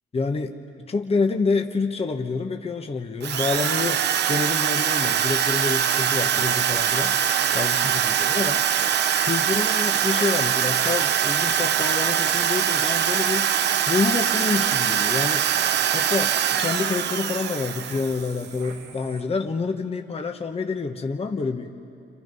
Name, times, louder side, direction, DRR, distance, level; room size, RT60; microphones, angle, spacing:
voice 1, 0.1-0.6 0.9-4.0 4.3-7.2 7.5-8.6 9.2-13.5 13.9-15.7 15.9-21.7, left 4 dB, 30° left, 4 dB, 1.3 m, -27 dB
Drill, 3.2-18.4, right 9 dB, 60° right, 0.7 m, -23 dB
sound 1, 6.3-19.2, right 5 dB, 85° right, 2.0 m, -43 dB
29.5 x 27.5 x 5.6 m, 2.6 s
cardioid pair, 90°, 20 cm